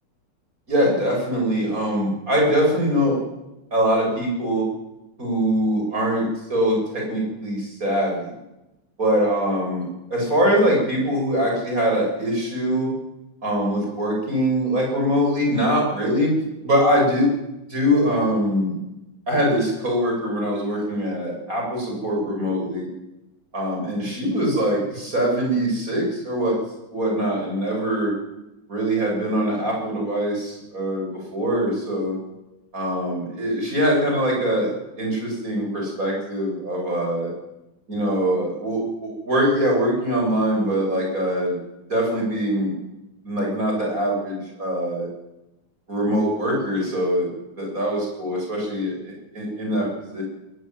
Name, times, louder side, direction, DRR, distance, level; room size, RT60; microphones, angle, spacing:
voice 1, 0.7-3.2 3.7-4.7 5.2-8.3 9.0-12.9 13.4-16.3 16.6-17.3 17.7-18.8 19.3-22.9 23.5-26.5 26.9-28.1 28.7-32.2 32.7-34.7 35.0-37.3 37.9-41.6 41.9-42.7 43.2-45.1 45.9-47.3 47.6-50.2, equal, 25° right, -1 dB, 7.4 m, -23 dB
20.5 x 13.5 x 9.5 m, 0.94 s
omnidirectional pair, 3.6 m